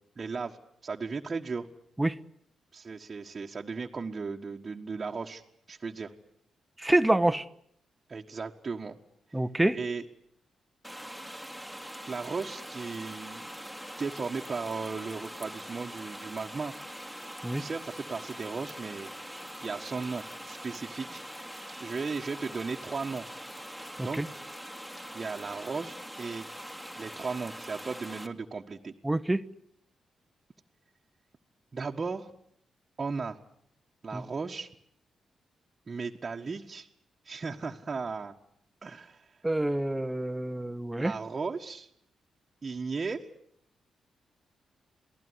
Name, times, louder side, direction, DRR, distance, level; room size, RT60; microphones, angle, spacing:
voice 1, 0.2-0.6 0.8-1.7 2.7-5.4 5.7-6.1 8.1-9.0 9.7-10.0 12.1-13.5 14.0-16.7 17.6-19.1 19.6-21.2 21.5-23.2 24.0-24.2 25.1-26.5 27.0-28.9 31.7-32.3 33.0-33.4 34.0-34.7 35.9-36.9 37.2-38.3 38.8-39.4 41.0-41.9 42.6-43.3, right 4 dB, 45° right, 1.5 m, -36 dB
voice 2, 6.8-7.4 9.3-9.8 17.4-17.6 24.0-24.3 29.0-29.4 34.1-34.2 39.4-41.1, right 1 dB, 15° right, 1.3 m, -27 dB
sound 1, 10.8-28.3, equal, 5° left, 2.8 m, -43 dB
28.5 x 18.0 x 9.8 m
supercardioid pair, 45°, 0 cm